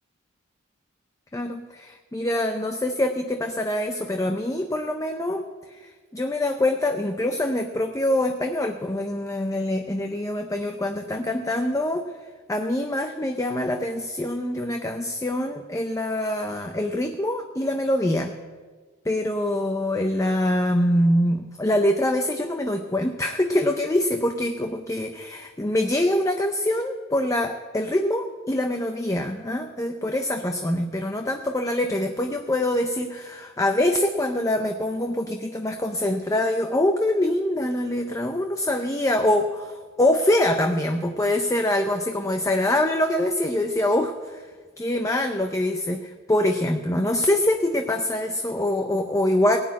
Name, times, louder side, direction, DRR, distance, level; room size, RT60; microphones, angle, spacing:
voice 1, 1.3-5.4 5.7-12.0 12.5-18.3 19.1-44.5 44.8-49.6, left 1 dB, 15° left, 5 dB, 0.6 m, -24 dB
17.5 x 6.3 x 9.3 m, 1.4 s
head